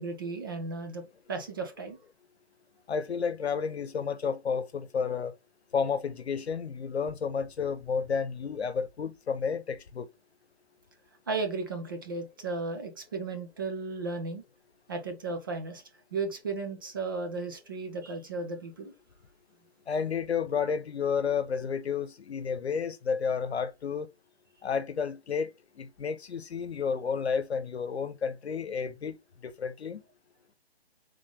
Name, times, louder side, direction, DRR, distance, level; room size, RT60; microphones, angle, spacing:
voice 1, 0.0-2.0 11.3-14.4 14.9-15.8 16.1-18.9, right 3 dB, 20° right, 0.5 m, -35 dB
voice 2, 2.9-5.3 5.7-10.1 19.9-24.1 24.6-29.2 29.4-30.0, left 6 dB, 85° left, 0.8 m, -31 dB
3.7 x 3.5 x 3.6 m
hypercardioid pair, 155°, 31 cm